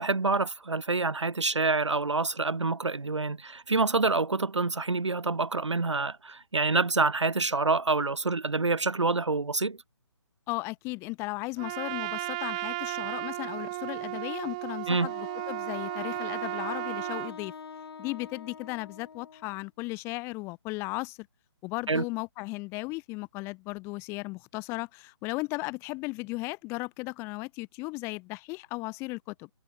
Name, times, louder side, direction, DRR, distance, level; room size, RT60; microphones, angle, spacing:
voice 1, 0.0-9.8 14.9-15.1 21.9-22.0, right 3 dB, 75° right, 3.9 m, -27 dB
voice 2, 10.5-17.5 18.0-21.3 21.6-29.5, left 24 dB, 15° left, 1.2 m, -36 dB
Trumpet, 11.6-17.4, right 22 dB, 15° right, 0.4 m, -34 dB
Wind instrument woodwind instrument, 15.0-19.6, left 6 dB, 55° left, 4.8 m, -44 dB
figure-of-eight pair, 145°, 15 cm